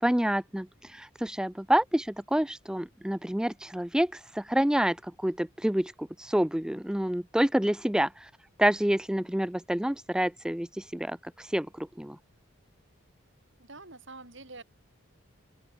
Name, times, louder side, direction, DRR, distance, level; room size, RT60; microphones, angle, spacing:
voice 1, 0.0-8.3 8.6-12.2, right 1 dB, 5° right, 0.3 m, -28 dB
voice 2, 13.6-14.6, right 3 dB, 55° right, 4.4 m, -46 dB
open air
head